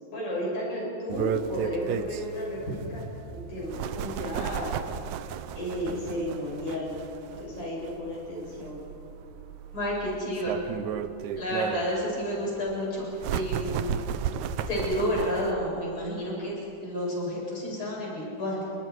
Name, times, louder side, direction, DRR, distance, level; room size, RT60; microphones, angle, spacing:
voice 1, 0.1-2.6 2.9-3.0 3.3-4.7 5.6-7.0 7.4-8.8, equal, 85° left, -5 dB, 8.3 m, -33 dB
sound 1, 1.1-15.5, right 8 dB, 75° right, 2.1 m, -34 dB
voice 2, 9.7-10.6 11.3-13.0 13.3-14.0 14.7-18.6, equal, 25° left, -5 dB, 8.3 m, -30 dB
30.0 x 27.0 x 4.7 m, 2.7 s
omnidirectional pair, 3.6 m